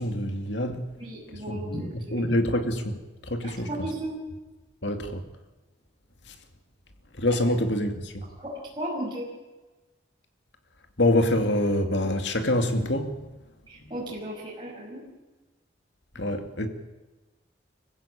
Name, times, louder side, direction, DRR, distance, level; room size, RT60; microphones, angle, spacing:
voice 1, 0.0-0.9 1.5-1.8 2.1-3.0 3.3-3.7 4.8-5.2 7.2-8.2 11.0-13.2 16.2-16.7, left 1 dB, 70° left, 2.4 m, -25 dB
voice 2, 1.0-2.2 3.4-4.1 8.4-9.3 13.7-15.0, right 1 dB, 25° right, 6.0 m, -35 dB
25.0 x 15.5 x 8.9 m
head